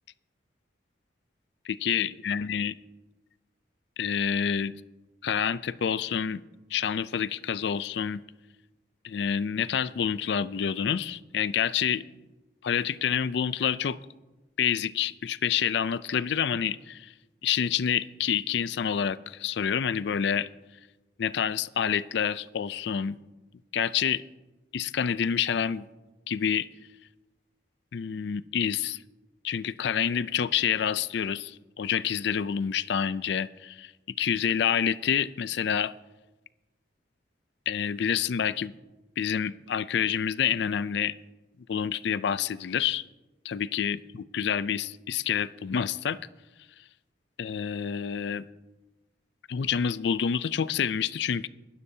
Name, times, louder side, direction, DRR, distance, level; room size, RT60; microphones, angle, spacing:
voice 1, 1.7-2.7 4.0-4.7 5.2-6.4 6.7-8.2 9.0-12.0 12.6-14.0 14.6-17.1 17.4-20.5 21.2-23.2 23.7-24.2 24.7-25.9 26.3-26.7 27.9-29.0 29.4-33.9 34.2-35.9 37.7-38.7 39.2-41.2 41.7-43.0 43.4-46.2 47.4-48.5 49.5-51.5, left 8 dB, 70° left, 17 dB, 0.4 m, -28 dB
21.5 x 12.5 x 2.7 m, 1.1 s
head